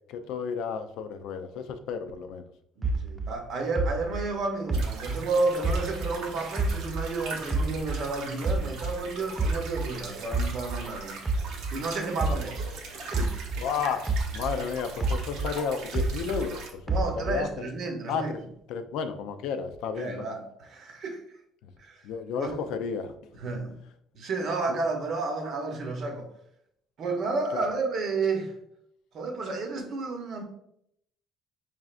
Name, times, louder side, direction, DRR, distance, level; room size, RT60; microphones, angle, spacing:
voice 1, 0.1-2.4 13.6-14.0 14.3-16.8 17.2-17.5 18.1-18.4 18.7-20.3 22.0-23.1 27.5-27.7, left 6 dB, 80° left, 0.4 m, -32 dB
sound 1, 2.8-6.2 6.6-9.0 9.4-13.7 14.1-16.5 16.9-17.6, right 3 dB, 10° right, 0.3 m, -29 dB
voice 2, 2.8-11.2 11.7-13.4 16.9-18.3 20.0-21.2 21.8-22.0 22.4-22.6 23.4-23.8 24.1-26.3 27.0-28.5 29.1-30.4, right 3 dB, 50° right, 0.8 m, -31 dB
sound 2, 4.7-16.7, right 3 dB, 85° right, 0.9 m, -41 dB
4.8 x 3.3 x 2.4 m
cardioid pair, 135°, 0 cm